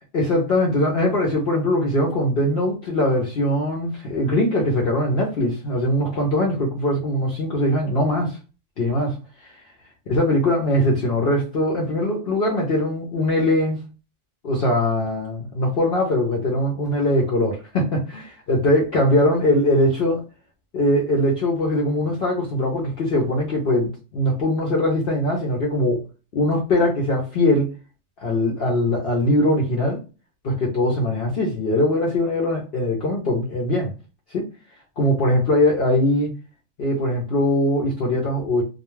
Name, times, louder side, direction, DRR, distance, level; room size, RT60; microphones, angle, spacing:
voice 1, 0.1-8.4 8.8-9.6 10.1-13.8 14.4-20.2 20.7-26.0 26.3-27.7 28.2-30.0 30.4-33.9 34.3-34.5 35.0-36.3 36.8-38.6, left 1 dB, 60° left, 0.8 m, -21 dB
2.3 x 2.2 x 3.0 m
omnidirectional pair, 1.3 m